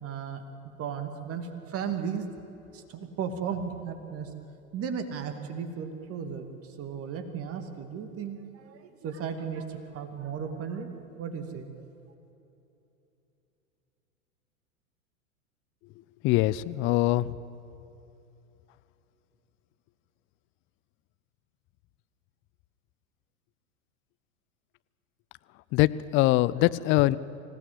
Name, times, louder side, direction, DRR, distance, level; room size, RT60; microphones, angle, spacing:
voice 1, 0.0-2.3 2.7-4.3 4.7-11.9, right 7 dB, 30° right, 7 dB, 2.4 m, -35 dB
voice 2, 16.2-17.3 25.7-27.2, left 17 dB, 30° left, 17 dB, 0.6 m, -23 dB
26.0 x 17.0 x 8.0 m, 2.9 s
figure-of-eight pair, 90°, 43 cm